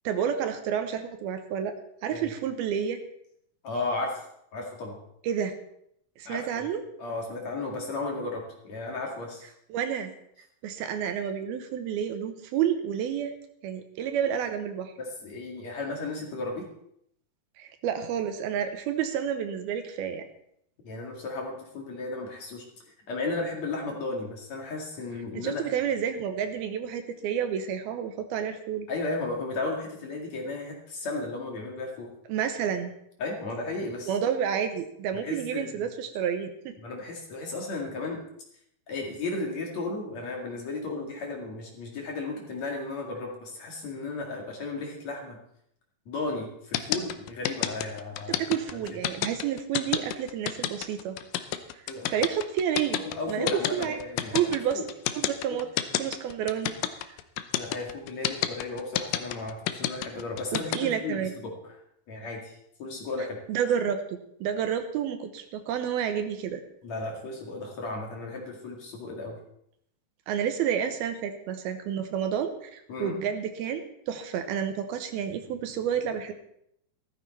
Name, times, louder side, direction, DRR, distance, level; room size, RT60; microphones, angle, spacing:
voice 1, 0.0-1.7 2.0-3.0 5.2-5.5 6.2-6.8 9.7-10.1 10.6-13.3 13.6-14.9 17.6-20.3 25.3-28.9 32.3-32.9 34.1-36.7 48.3-51.2 51.7-51.8 52.1-53.0 53.3-53.5 53.7-54.0 54.3-54.8 55.1-55.7 56.0-56.7 57.1-57.2 60.5-61.3 63.5-66.6 70.3-76.3, right 8 dB, 75° right, 7 dB, 2.7 m, -30 dB
voice 2, 3.6-4.2 4.5-5.0 6.2-6.7 7.0-9.5 15.0-16.7 20.8-22.6 23.1-25.6 28.9-32.1 33.2-34.2 35.1-35.9 36.8-38.2 38.9-45.4 46.1-48.4 48.7-48.8 51.9-52.2 53.0-54.4 54.7-54.8 55.5-55.6 57.6-61.8 62.1-63.4 66.8-69.4 72.9-73.2, left 3 dB, 50° left, 0 dB, 3.0 m, -34 dB
sound 1, 46.7-60.8, left 13 dB, 75° left, 2.1 m, -28 dB
15.0 x 13.5 x 4.2 m, 0.72 s
omnidirectional pair, 4.7 m